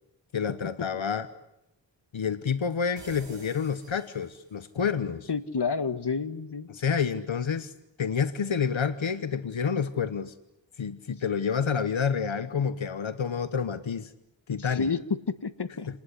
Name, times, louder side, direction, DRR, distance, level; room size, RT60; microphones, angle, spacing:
voice 1, 0.3-1.3 2.1-5.3 6.7-7.7 8.0-10.3 10.8-14.1 14.5-14.9, left 6 dB, 85° left, 12 dB, 1.1 m, -29 dB
sound 1, 3.0-4.8, right 3 dB, 65° right, 5.2 m, -49 dB
voice 2, 5.3-6.7 14.7-15.9, left 5 dB, 60° left, 12 dB, 1.6 m, -29 dB
29.0 x 20.0 x 9.9 m, 0.86 s
wide cardioid pair, 50°, 45 cm